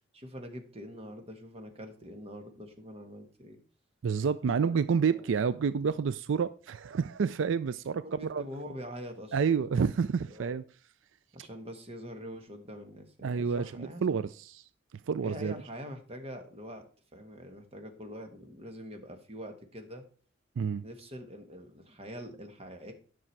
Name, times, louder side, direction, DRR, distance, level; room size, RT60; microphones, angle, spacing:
voice 1, 0.1-3.6 4.6-5.3 5.8-6.0 8.0-9.4 9.7-9.9 10.3-10.6 11.3-14.2 15.2-16.8 17.1-20.0 20.8-22.9, equal, 30° right, 1.5 m, -44 dB
voice 2, 4.0-8.4 9.3-10.6 13.2-14.6 15.1-15.5 20.6-20.8, right 6 dB, 80° right, 0.4 m, -29 dB
10.0 x 6.1 x 4.6 m
head